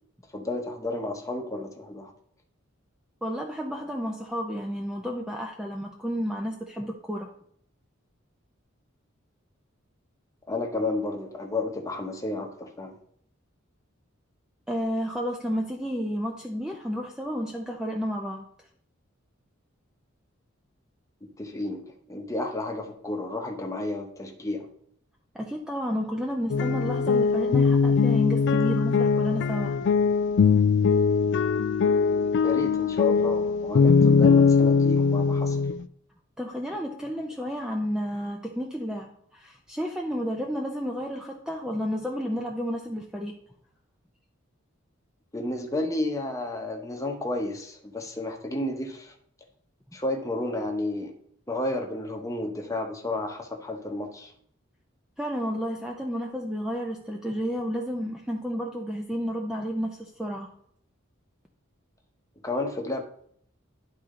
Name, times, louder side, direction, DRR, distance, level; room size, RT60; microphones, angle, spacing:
voice 1, 0.3-2.1 10.5-12.9 21.4-24.7 32.4-35.6 45.3-49.1 49.9-51.1 51.5-54.3 62.4-63.0, left 2 dB, 15° left, 3 dB, 1.0 m, -31 dB
voice 2, 3.2-7.3 14.7-18.5 25.3-29.8 36.4-43.3 55.2-60.5, equal, 5° right, 1 dB, 0.6 m, -31 dB
sound 1, 26.5-35.8, left 5 dB, 60° left, 0.3 m, -21 dB
11.0 x 4.3 x 3.8 m, 0.65 s
head